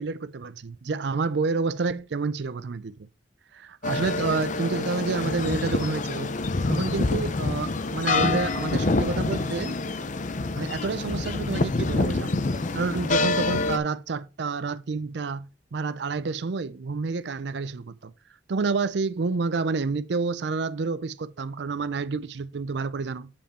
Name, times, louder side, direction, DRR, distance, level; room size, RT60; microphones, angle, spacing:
voice 1, 0.0-3.1 3.5-6.3 6.7-9.8 10.6-12.4 12.7-18.1 18.5-23.3, right 4 dB, 65° right, 0.5 m, -29 dB
sound 1, 3.8-13.8, left 3 dB, 40° left, 0.6 m, -26 dB
7.1 x 5.4 x 4.2 m
head